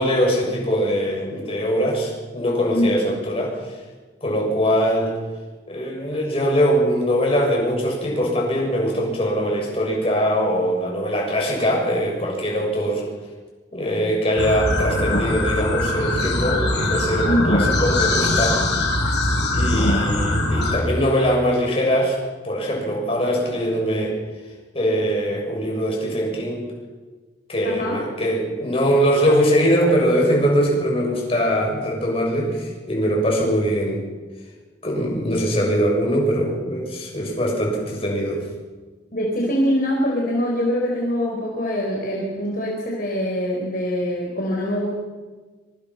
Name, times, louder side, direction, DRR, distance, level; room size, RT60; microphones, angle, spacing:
voice 1, 0.0-3.7 4.2-5.2 5.7-13.0 13.7-18.6 19.5-22.2 22.4-24.2 24.7-26.7 27.5-34.1 34.8-38.4, equal, 35° left, -1 dB, 6.9 m, -22 dB
sound 1, 14.4-20.8, left 2 dB, 70° left, 5.5 m, -21 dB
voice 2, 27.6-28.0 39.1-44.9, equal, 50° left, -2 dB, 4.6 m, -23 dB
25.5 x 24.5 x 5.8 m, 1.4 s
head